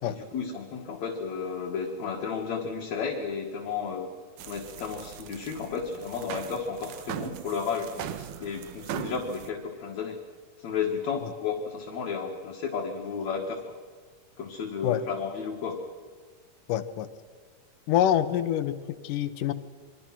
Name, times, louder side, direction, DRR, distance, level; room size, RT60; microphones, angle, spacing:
voice 1, 0.0-4.1 4.4-10.2 10.6-13.8 14.4-15.8, left 6 dB, 60° left, -1 dB, 3.0 m, -33 dB
sound 1, 4.4-9.5, right 11 dB, 85° right, 2.6 m, -39 dB
voice 2, 16.7-17.1 17.9-19.5, left 11 dB, 85° left, 12 dB, 2.6 m, -26 dB
26.5 x 23.5 x 6.0 m, 1.5 s
omnidirectional pair, 3.6 m